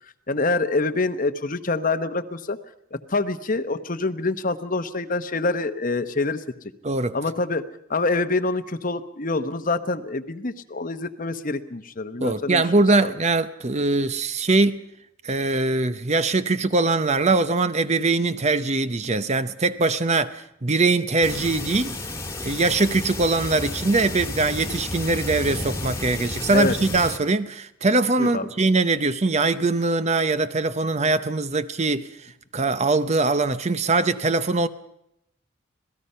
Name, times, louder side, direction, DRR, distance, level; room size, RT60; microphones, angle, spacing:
voice 1, 0.3-2.6 2.9-6.4 7.1-7.6 7.9-12.6 13.0-13.1 26.5-26.7 28.2-28.5, left 3 dB, 40° left, 1.0 m, -26 dB
voice 2, 6.8-7.2 12.2-14.8 15.2-22.0 22.4-34.7, right 3 dB, 30° right, 0.7 m, -22 dB
sound 1, 21.2-27.2, left 2 dB, 15° left, 1.6 m, -32 dB
26.5 x 18.0 x 5.6 m
head